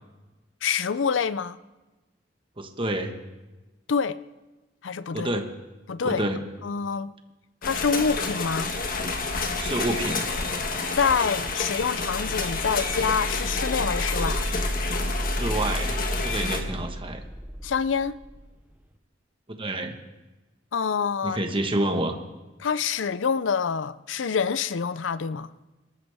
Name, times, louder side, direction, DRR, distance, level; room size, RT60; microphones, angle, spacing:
voice 1, 0.6-1.6 3.9-4.2 4.8-5.3 5.9-6.2 6.6-7.1 7.6-8.7 10.9-14.4 17.6-18.2 20.7-21.4 22.6-25.5, left 6 dB, 85° left, 0.5 m, -26 dB
voice 2, 2.6-3.1 5.1-5.5 6.0-6.4 9.6-10.2 15.4-17.2 19.5-20.0 21.2-22.2, right 1 dB, 30° right, 1.4 m, -28 dB
sound 1, 7.6-16.6, left 3 dB, 50° left, 1.5 m, -29 dB
sound 2, 11.8-18.5, equal, 10° right, 0.7 m, -32 dB
25.5 x 13.0 x 3.5 m
head